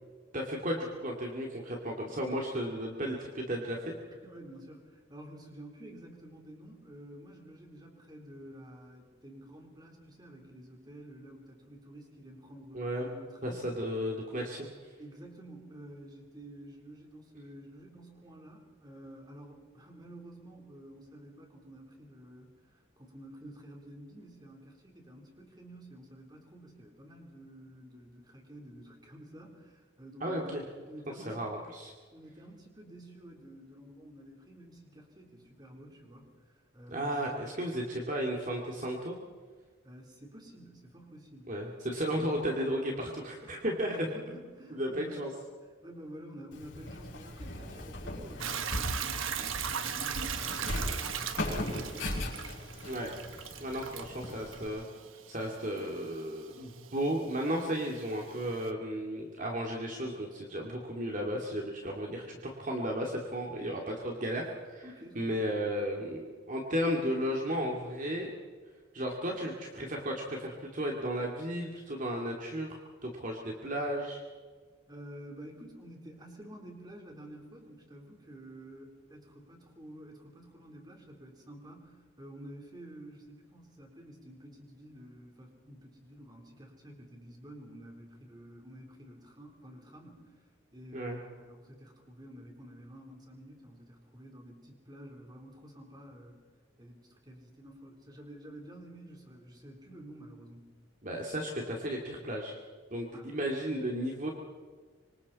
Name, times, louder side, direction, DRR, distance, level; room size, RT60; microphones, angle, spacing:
voice 1, 0.3-3.9 12.7-13.1 13.4-14.9 30.2-30.6 31.2-31.9 36.9-39.2 41.5-44.1 44.7-45.3 52.8-53.2 53.6-54.8 55.3-64.8 65.2-68.3 68.9-74.2 90.9-91.2 101.0-102.6 102.9-104.3, equal, 40° right, 0 dB, 2.5 m, -34 dB
voice 2, 4.2-13.8 15.0-31.5 32.1-37.3 39.8-41.6 43.5-45.3 45.8-52.0 64.8-65.4 74.9-90.5 90.7-96.4 96.8-100.7 103.1-103.4, right 1 dB, 20° right, 1 dB, 3.8 m, -50 dB
Walk footsteps, 46.5-54.7, left 1 dB, 65° left, 6.4 m, -38 dB
Hiss / Toilet flush / Trickle dribble, 48.4-58.7, right 8 dB, 85° right, 1.2 m, -39 dB
26.0 x 25.5 x 4.3 m, 1.5 s
head